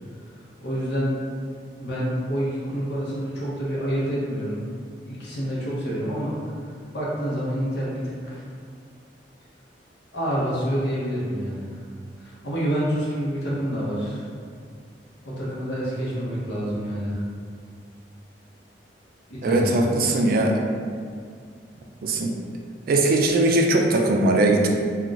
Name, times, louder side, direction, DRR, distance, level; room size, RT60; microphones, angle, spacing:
voice 1, 0.6-1.1 1.8-4.6 5.1-6.4 6.7-8.4 10.1-11.7 12.2-14.2 15.2-17.2 19.3-19.9, equal, 70° left, -6 dB, 0.7 m, -27 dB
voice 2, 19.4-20.6 22.0-22.3 22.9-24.7, right 2 dB, 55° right, 2 dB, 0.3 m, -20 dB
2.3 x 2.3 x 3.8 m, 2.1 s
head